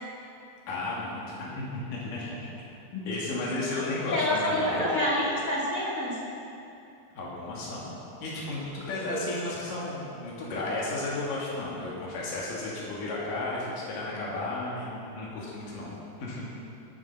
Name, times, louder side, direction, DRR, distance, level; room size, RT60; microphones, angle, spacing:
voice 1, 0.7-2.5 2.9-4.9 7.2-15.9 16.2-16.4, left 2 dB, 90° left, -6 dB, 3.7 m, -33 dB
voice 2, 4.1-6.2 9.1-9.2, left 1 dB, 25° left, -7 dB, 3.1 m, -27 dB
19.0 x 7.5 x 5.9 m, 2.7 s
omnidirectional pair, 3.7 m